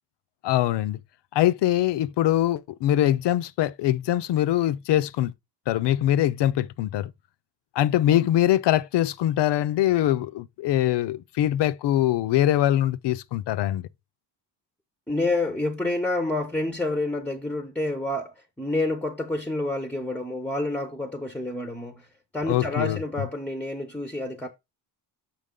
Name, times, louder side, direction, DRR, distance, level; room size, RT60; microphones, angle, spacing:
voice 1, 0.4-1.0 1.3-5.3 5.7-7.1 7.8-13.9 22.5-23.0, left 13 dB, 70° left, 0.6 m, -23 dB
voice 2, 15.1-22.1 22.3-24.5, left 2 dB, 5° left, 0.6 m, -28 dB
6.9 x 5.8 x 3.7 m
cardioid pair, 170°, 43 cm